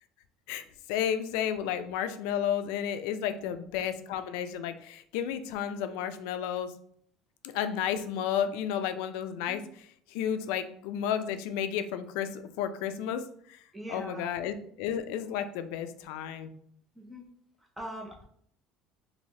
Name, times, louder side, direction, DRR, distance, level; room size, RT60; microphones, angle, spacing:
voice 1, 0.9-6.7 7.4-13.6 13.9-16.5, left 9 dB, 80° left, 10 dB, 0.3 m, -32 dB
voice 2, 13.7-14.3 17.0-17.2 17.8-18.2, right 1 dB, 5° right, -1 dB, 0.4 m, -41 dB
3.1 x 2.6 x 2.7 m, 0.64 s
cardioid pair, 175°, 0 cm